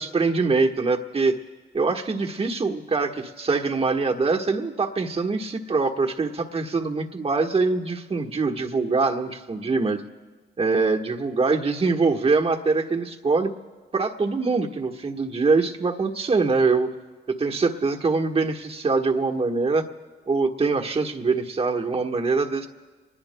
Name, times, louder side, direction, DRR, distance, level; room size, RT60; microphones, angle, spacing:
voice 1, 0.0-1.4 1.7-10.0 10.6-13.5 13.9-16.9 17.4-19.8 20.3-22.7, right 4 dB, 30° right, 2 dB, 1.3 m, -23 dB
28.5 x 20.5 x 2.2 m, 1.3 s
cardioid pair, 90°, 20 cm